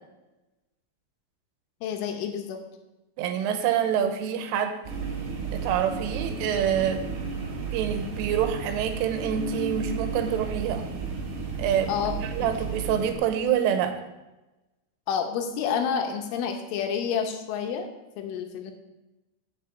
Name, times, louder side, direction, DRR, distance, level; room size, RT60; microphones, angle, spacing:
voice 1, 1.8-2.6 11.9-12.5 15.1-17.9 18.2-18.7, left 7 dB, 80° left, 5 dB, 3.4 m, -29 dB
voice 2, 3.2-4.8 5.5-7.1 7.7-10.9 11.6-14.0, right 9 dB, 85° right, 7 dB, 3.4 m, -26 dB
sound 1, 4.8-13.1, right 5 dB, 65° right, 3.8 m, -33 dB
7.6 x 6.7 x 8.2 m, 1.0 s
omnidirectional pair, 5.7 m